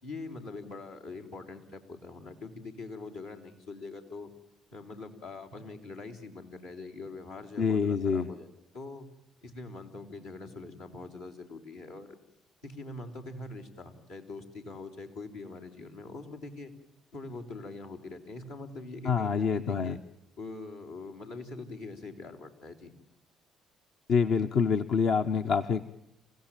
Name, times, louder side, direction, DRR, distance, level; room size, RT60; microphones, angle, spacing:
voice 1, 0.0-4.3 4.7-8.5 8.7-9.1 9.4-12.1 12.6-16.7 17.1-20.0 20.4-22.9, left 3 dB, 90° left, -3 dB, 3.4 m, -43 dB
voice 2, 7.6-8.3 19.0-20.0 24.1-25.8, left 6 dB, 65° left, 6 dB, 0.8 m, -26 dB
28.5 x 16.5 x 8.9 m, 0.86 s
hypercardioid pair, 50°, 0 cm